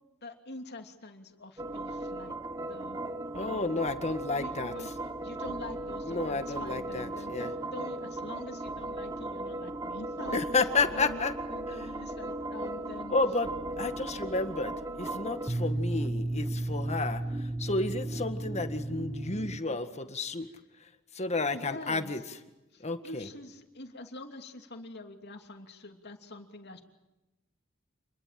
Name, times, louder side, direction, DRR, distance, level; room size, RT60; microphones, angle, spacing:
voice 1, 0.2-2.3 2.7-3.0 3.4-3.8 4.3-10.4 10.9-13.1 21.5-22.1 22.7-26.8, left 2 dB, 55° left, 5 dB, 2.9 m, -45 dB
sound 1, 1.6-19.6, right 2 dB, 15° right, 1.1 m, -36 dB
voice 2, 3.3-4.7 6.1-7.5 10.3-11.3 13.1-13.5 13.8-20.5 21.1-22.2 22.8-23.3, left 3 dB, 35° left, 9 dB, 1.8 m, -31 dB
28.5 x 21.5 x 7.7 m, 0.99 s
head